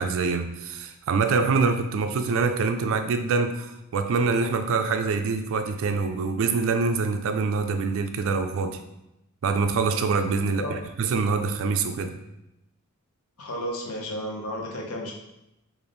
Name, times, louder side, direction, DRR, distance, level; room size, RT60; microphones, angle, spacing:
voice 1, 0.0-8.8 9.4-12.1, right 4 dB, 60° right, 8 dB, 0.3 m, -25 dB
voice 2, 13.4-15.1, equal, 75° left, 0 dB, 0.8 m, -32 dB
3.4 x 2.5 x 3.9 m, 0.88 s
head